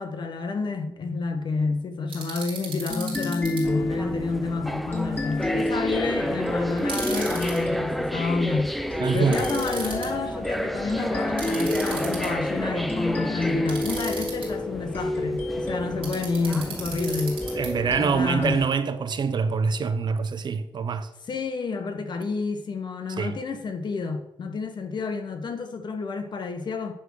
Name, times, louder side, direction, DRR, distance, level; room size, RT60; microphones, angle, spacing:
voice 1, 0.0-8.8 9.1-17.4 18.0-18.7 21.3-26.9, left 4 dB, 60° left, 1.1 m, -29 dB
sound 1, 2.1-3.6 6.8-7.6 9.3-10.1 11.4-12.5 13.7-14.5 16.0-17.7, right 5 dB, 85° right, 3.3 m, -36 dB
sound 2, 2.9-20.1, left 1 dB, 25° left, 2.5 m, -31 dB
sound 3, 3.6-18.7, equal, ahead, 0.5 m, -32 dB
voice 2, 9.0-9.4 17.5-21.1 23.2-23.4, right 5 dB, 55° right, 0.7 m, -25 dB
10.0 x 3.6 x 6.3 m
wide cardioid pair, 105°, 9 cm